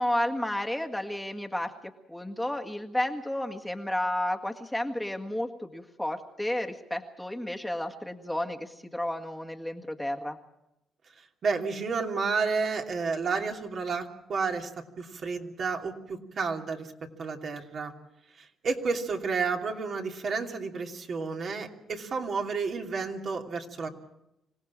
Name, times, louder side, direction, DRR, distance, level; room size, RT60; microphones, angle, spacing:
voice 1, 0.0-10.4, left 1 dB, 5° left, 4 dB, 1.8 m, -32 dB
voice 2, 11.4-17.9 18.4-23.9, right 4 dB, 55° right, 2 dB, 2.9 m, -31 dB
26.0 x 17.5 x 7.4 m, 0.87 s
cardioid pair, 90°, 0 cm